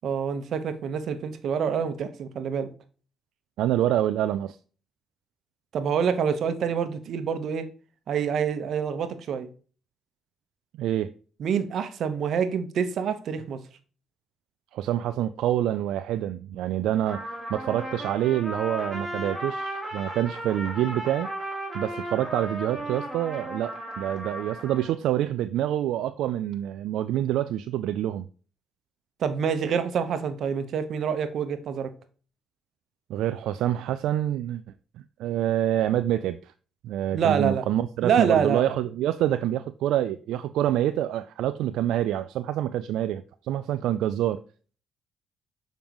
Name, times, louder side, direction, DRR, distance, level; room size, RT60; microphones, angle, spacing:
voice 1, 0.0-2.7 5.7-7.7 8.1-9.5 11.4-13.6 29.2-31.9 37.1-37.6 38.0-38.8, right 7 dB, 65° right, 1.0 m, -26 dB
voice 2, 3.6-4.6 10.8-11.1 14.7-21.3 21.7-28.3 33.1-34.6 35.2-36.5 36.8-44.4, right 12 dB, 85° right, 0.3 m, -27 dB
Trumpet, 17.1-24.9, right 1 dB, 10° right, 3.1 m, -35 dB
7.1 x 5.1 x 3.0 m
cardioid pair, 90°, 0 cm